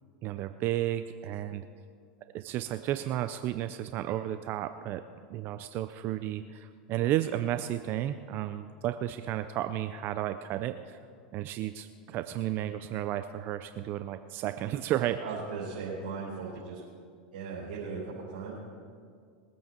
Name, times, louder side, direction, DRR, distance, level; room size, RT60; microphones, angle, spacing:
voice 1, 0.2-1.7 2.3-5.0 5.3-11.0 11.3-15.2, right 13 dB, 45° right, 10 dB, 0.6 m, -32 dB
voice 2, 15.2-16.8 17.3-18.6, right 5 dB, 85° right, -7 dB, 4.5 m, -37 dB
22.5 x 8.4 x 4.6 m, 2.1 s
hypercardioid pair, 105°, 5 cm